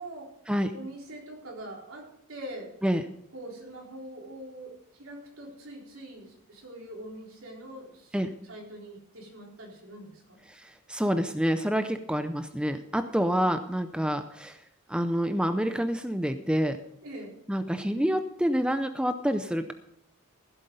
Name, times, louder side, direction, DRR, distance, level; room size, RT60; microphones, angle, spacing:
voice 1, 0.7-2.7 3.3-8.2 8.4-10.4 17.0-17.4, right 1 dB, 70° right, -1 dB, 4.0 m, -43 dB
voice 2, 10.5-14.6 14.9-16.8 17.5-19.7, equal, 5° right, 9 dB, 0.5 m, -27 dB
15.0 x 8.2 x 5.3 m, 0.72 s
head